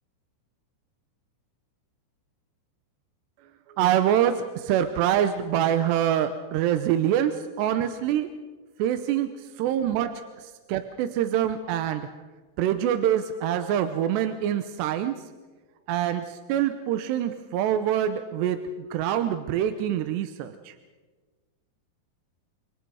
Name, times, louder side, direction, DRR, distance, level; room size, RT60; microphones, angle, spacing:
voice 1, 3.8-8.3 8.8-10.1 10.4-12.0 12.6-15.2 15.9-18.6 18.9-20.7, right 10 dB, 75° right, 8 dB, 2.8 m, -25 dB
30.0 x 27.5 x 4.8 m, 1.4 s
omnidirectional pair, 5.5 m